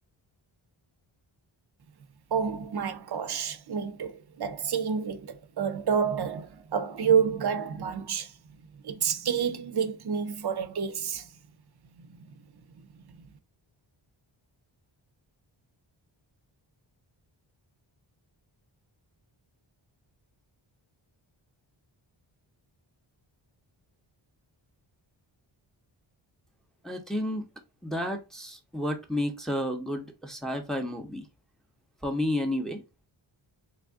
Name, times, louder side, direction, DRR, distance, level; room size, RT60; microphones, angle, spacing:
voice 1, 2.3-8.3 8.8-11.3 12.0-12.2 13.2-13.3, right 7 dB, 55° right, 0.6 m, -29 dB
voice 2, 26.8-27.5 27.8-31.2 32.0-32.8, left 1 dB, ahead, 0.7 m, -31 dB
3.4 x 2.4 x 3.5 m
wide cardioid pair, 100°, 48 cm